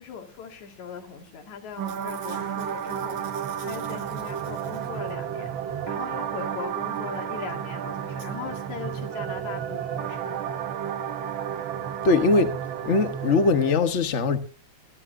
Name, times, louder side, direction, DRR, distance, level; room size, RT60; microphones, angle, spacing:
voice 1, 0.0-3.2 3.7-5.5 5.9-10.4, left 6 dB, 80° left, 3.6 m, -39 dB
Packing tape duct tape / Tearing, 1.2-1.4 1.7-5.3 7.2-7.3 7.5-7.6 8.2-8.3 8.9-9.0 9.2-9.3, right 3 dB, 85° right, 6.5 m, -50 dB
sound 1, 1.8-13.7, right 9 dB, 60° right, 1.3 m, -32 dB
voice 2, 12.0-12.5 12.8-14.4, left 3 dB, 50° left, 0.9 m, -21 dB
25.0 x 12.5 x 2.7 m
omnidirectional pair, 3.3 m